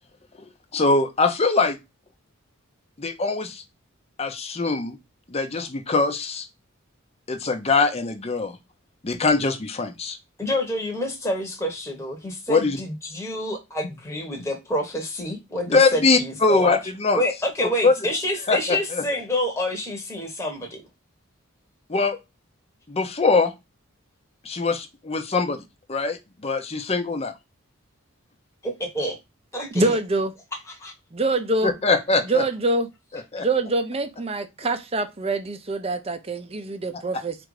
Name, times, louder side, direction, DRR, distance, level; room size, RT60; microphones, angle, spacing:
voice 1, 0.7-1.8 3.0-3.6 4.2-5.0 5.3-6.5 7.3-8.6 9.0-10.2 12.5-12.8 15.7-17.2 17.6-17.9 18.5-19.1 21.9-22.2 22.9-23.5 24.4-25.6 25.9-27.3 31.6-32.4 33.1-33.5 36.9-37.0, left 3 dB, 30° left, 0.6 m, -22 dB
voice 2, 10.4-16.7 17.1-20.8 28.6-29.2 29.5-30.0, left 1 dB, 15° left, 1.0 m, -28 dB
voice 3, 29.7-30.3 31.2-31.7 32.3-32.9 33.4-37.4, right 2 dB, 30° right, 0.6 m, -25 dB
4.5 x 2.5 x 4.7 m
head